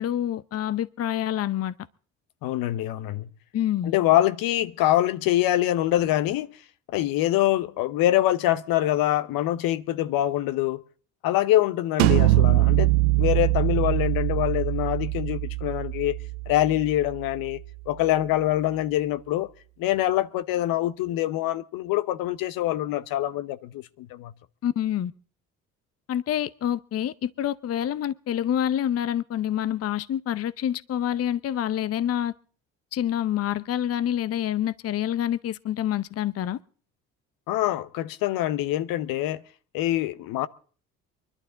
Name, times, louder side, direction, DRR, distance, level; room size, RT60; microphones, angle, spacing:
voice 1, 0.0-1.7 3.5-3.9 24.6-25.1 26.1-32.3 32.9-36.6, left 11 dB, 40° left, 0.7 m, -27 dB
voice 2, 2.4-3.3 3.8-6.5 6.9-10.8 11.2-16.2 16.5-17.6 17.9-19.5 19.8-24.3 37.5-39.4 39.7-40.5, left 14 dB, 65° left, 0.9 m, -24 dB
sound 1, 12.0-17.6, right 19 dB, 85° right, 0.7 m, -23 dB
24.0 x 11.5 x 3.8 m
hypercardioid pair, 60°, 37 cm